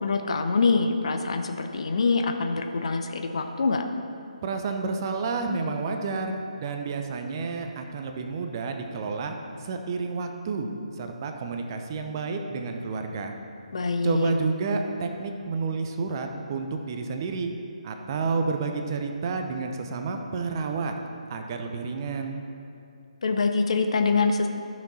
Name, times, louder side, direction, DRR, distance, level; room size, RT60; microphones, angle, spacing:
voice 1, 0.0-3.9 13.7-14.3 23.2-24.5, left 4 dB, 50° left, 6 dB, 0.8 m, -25 dB
voice 2, 4.4-9.4 9.6-10.7 11.0-13.3 14.0-17.5 17.8-20.9 21.3-22.4, right 4 dB, 35° right, 5 dB, 0.8 m, -30 dB
13.5 x 6.3 x 4.3 m, 2.6 s
figure-of-eight pair, 140°, 4 cm